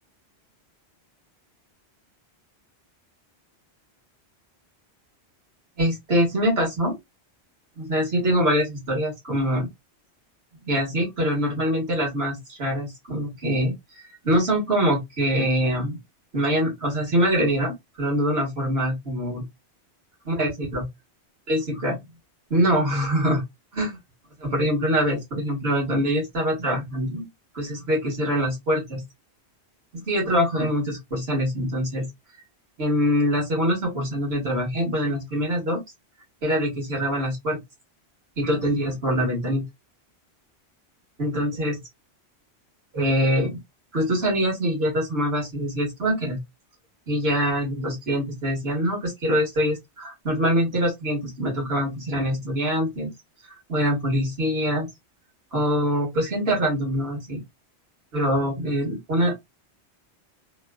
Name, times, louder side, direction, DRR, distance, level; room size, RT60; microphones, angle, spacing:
voice 1, 5.8-7.0 7.8-9.7 10.7-16.0 16.3-19.4 20.3-20.8 21.5-22.0 22.5-23.4 23.7-24.0 24.4-27.3 27.5-29.0 29.9-32.1 32.8-35.8 36.4-37.6 38.4-39.6 41.2-41.8 42.9-43.6 43.9-46.4 47.1-53.1 53.7-54.9 55.5-57.4 58.1-59.3, equal, 65° right, 1.5 m, -24 dB
3.0 x 2.1 x 2.2 m
omnidirectional pair, 1.1 m